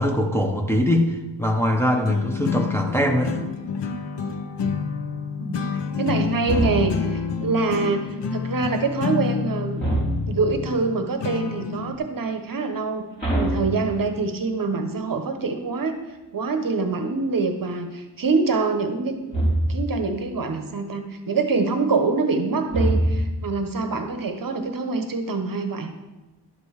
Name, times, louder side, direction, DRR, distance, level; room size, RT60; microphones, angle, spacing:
voice 1, 0.0-3.5, left 1 dB, 5° left, 0 dB, 1.0 m, -22 dB
sound 1, 2.0-12.0, left 6 dB, 75° left, 0.9 m, -29 dB
voice 2, 6.0-9.8 10.3-16.0 16.3-19.4 19.7-25.9, right 4 dB, 50° right, 6 dB, 1.0 m, -25 dB
sound 2, 6.5-7.2 9.8-10.6 13.2-14.4 19.3-20.0 22.7-23.5, right 1 dB, 20° left, 4.0 m, -24 dB
11.5 x 5.3 x 6.5 m, 1.1 s
wide cardioid pair, 140°, 42 cm